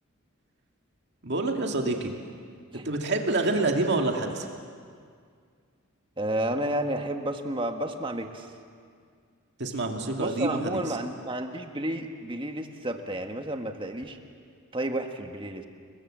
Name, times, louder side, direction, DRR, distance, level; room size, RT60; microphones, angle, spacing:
voice 1, 1.2-2.1 2.7-4.5 9.6-11.0, right 2 dB, 50° right, 2 dB, 2.2 m, -27 dB
voice 2, 6.2-8.5 10.2-14.2 14.7-15.7, right 1 dB, 25° right, 5 dB, 1.6 m, -31 dB
29.5 x 21.5 x 7.6 m, 2.1 s
head